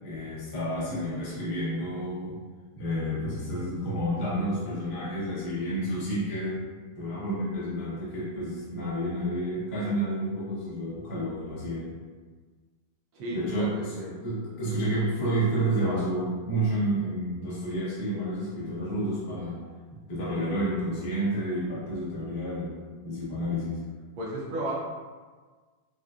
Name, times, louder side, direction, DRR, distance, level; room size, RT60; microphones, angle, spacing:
voice 1, 0.0-2.4 2.7-6.6 6.9-11.9 13.3-14.0 14.2-19.6 20.1-22.8 23.0-23.8, right 1 dB, 40° left, -9 dB, 1.0 m, -30 dB
voice 2, 13.1-14.2 24.2-24.7, right 1 dB, 75° right, -5 dB, 1.4 m, -34 dB
6.3 x 2.2 x 2.4 m, 1.4 s
omnidirectional pair, 2.4 m